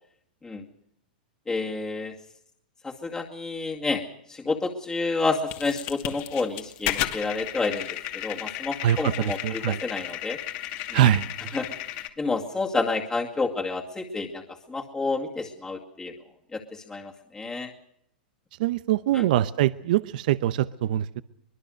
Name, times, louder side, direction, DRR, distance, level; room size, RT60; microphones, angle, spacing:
voice 1, 1.5-2.1 2.8-4.0 4.3-7.9 8.1-10.4 10.9-11.0 11.5-11.7 12.2-16.1 16.5-17.7 19.1-19.2, left 3 dB, 15° left, 0 dB, 2.2 m, -29 dB
sound 1, 5.5-12.1, left 13 dB, 50° left, 2.4 m, -34 dB
voice 2, 8.8-9.8 10.9-11.6 18.6-21.2, right 12 dB, 65° right, 15 dB, 0.8 m, -23 dB
24.0 x 21.0 x 6.6 m, 0.72 s
hypercardioid pair, 120°, 5 cm